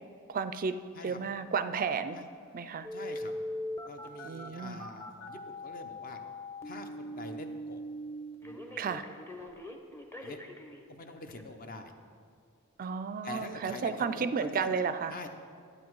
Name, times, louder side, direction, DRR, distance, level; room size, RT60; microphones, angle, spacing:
voice 1, 0.3-0.7 1.0-2.2 2.5-2.9 4.2-4.8 8.8-9.0 12.8-15.1, right 5 dB, 40° right, 12 dB, 0.4 m, -32 dB
Telephone, 2.8-10.8 11.4-11.5, left 1 dB, 10° left, 0.8 m, -41 dB
voice 2, 2.9-3.3 3.8-6.2 6.6-7.8 8.4-9.0 10.2-10.4 10.9-11.9 13.2-14.8 15.1-15.3, left 2 dB, 40° left, 6 dB, 0.8 m, -45 dB
12.0 x 8.6 x 4.7 m, 2.2 s
head